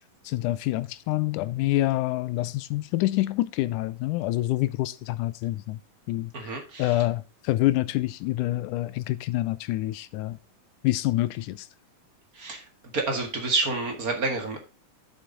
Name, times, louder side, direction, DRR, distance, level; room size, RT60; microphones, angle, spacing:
voice 1, 0.3-5.8 6.1-6.5 6.8-10.4 10.8-11.7, left 16 dB, 80° left, 1.9 m, -27 dB
voice 2, 6.3-7.0 12.3-12.6 12.9-14.6, right 3 dB, 35° right, 1.5 m, -29 dB
7.7 x 7.4 x 3.8 m
omnidirectional pair, 3.9 m